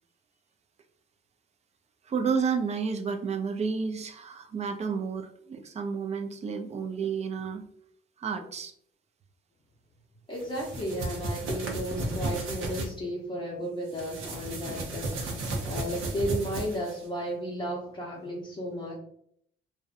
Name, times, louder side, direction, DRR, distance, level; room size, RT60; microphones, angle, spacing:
voice 1, 2.1-7.6 8.2-8.7, right 5 dB, 35° right, 6 dB, 0.4 m, -31 dB
voice 2, 10.3-15.3 15.6-19.0, equal, 25° left, -3 dB, 0.7 m, -34 dB
sound 1, 10.4-12.9 13.9-17.0, right 2 dB, 85° right, 0.6 m, -34 dB
2.6 x 2.1 x 2.4 m, 0.68 s
cardioid pair, 90°, 20 cm